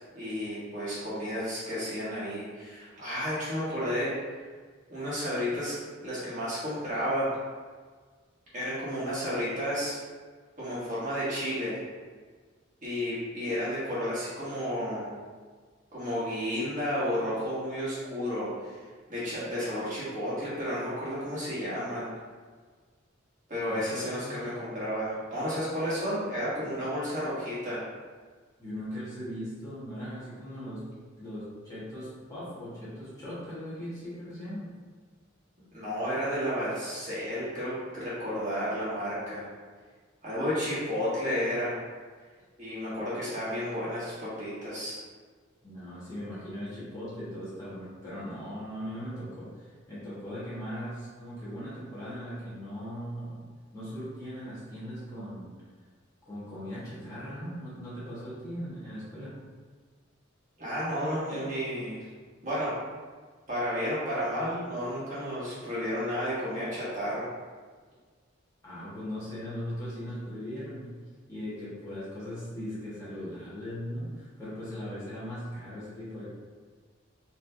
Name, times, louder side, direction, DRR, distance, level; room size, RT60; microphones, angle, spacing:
voice 1, 0.1-4.1 4.9-5.7 6.0-7.3 8.5-9.9 10.6-11.7 12.8-15.1 15.9-18.8 19.1-22.1 23.5-27.8 35.7-39.5 40.2-41.8 42.6-45.0 60.6-62.0 62.4-62.7 63.5-67.3, equal, 40° right, -10 dB, 1.4 m, -32 dB
voice 2, 23.7-24.3 26.6-26.8 28.6-30.9 31.2-34.7 45.6-53.5 53.7-55.5 56.2-59.4 68.6-70.9 71.3-76.3, equal, 15° left, -11 dB, 1.3 m, -39 dB
4.3 x 3.1 x 2.7 m, 1.5 s
head